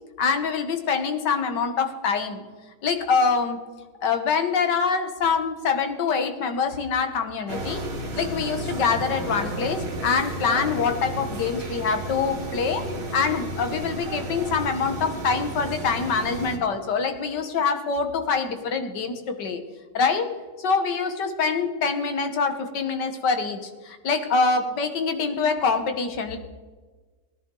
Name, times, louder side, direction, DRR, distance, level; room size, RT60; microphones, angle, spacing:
voice 1, 0.2-2.4 2.8-3.6 4.0-7.8 8.2-12.8 13.1-19.6 19.9-20.3 20.6-26.4, left 5 dB, 75° left, 7 dB, 1.9 m, -25 dB
sound 1, 7.5-16.6, right 1 dB, 40° right, 1.9 m, -33 dB
18.5 x 10.5 x 3.9 m, 1.3 s
omnidirectional pair, 1.9 m